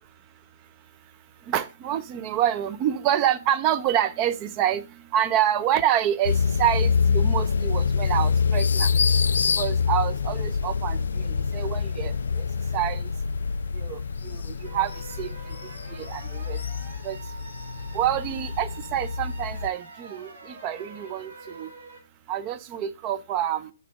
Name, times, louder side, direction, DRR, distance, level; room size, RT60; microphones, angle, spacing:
voice 1, 1.5-4.8 5.1-8.9 9.6-11.0 11.3-12.4 12.7-13.0 13.8-14.4 14.7-14.9 15.2-15.3 16.0-16.6 17.0-17.2 17.9-21.3 21.6-21.7 22.3-23.7, right 10 dB, 20° right, 0.3 m, -27 dB
sound 1, 6.2-19.7, left 5 dB, 80° left, 0.4 m, -26 dB
sound 2, 14.6-22.0, right 3 dB, 45° right, 2.6 m, -45 dB
6.4 x 3.4 x 5.4 m
hypercardioid pair, 175°, 0 cm